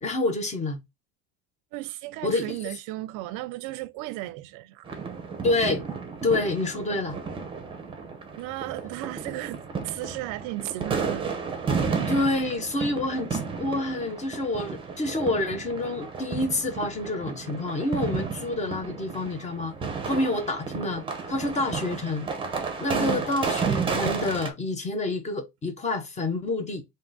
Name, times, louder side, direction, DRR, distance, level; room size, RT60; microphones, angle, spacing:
voice 1, 0.0-0.8 2.2-2.6 5.4-5.8 6.2-7.2 12.1-19.7 20.0-22.3 22.8-26.8, left 2 dB, 20° left, 0.7 m, -28 dB
voice 2, 1.7-4.9 8.3-11.3 22.9-23.3, right 17 dB, 65° right, 0.5 m, -35 dB
sound 1, 4.9-24.5, right 5 dB, 15° right, 0.7 m, -32 dB
3.6 x 2.7 x 3.8 m
cardioid pair, 160°, 34 cm